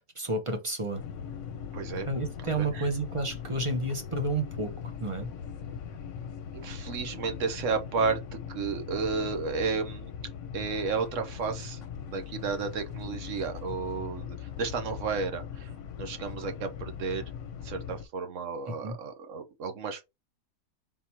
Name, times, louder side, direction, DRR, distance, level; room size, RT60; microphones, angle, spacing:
voice 1, 0.2-1.0 2.1-4.7 5.0-5.3 18.7-18.9, right 2 dB, 30° right, 0.7 m, -31 dB
sound 1, 0.9-18.0, left 7 dB, 65° left, 1.0 m, -40 dB
voice 2, 1.7-2.1 2.4-2.9 6.5-8.2 8.5-10.1 10.5-11.8 12.1-15.7 16.0-17.2 17.6-20.0, right 5 dB, 65° right, 1.1 m, -32 dB
3.7 x 2.9 x 4.3 m
omnidirectional pair, 1.4 m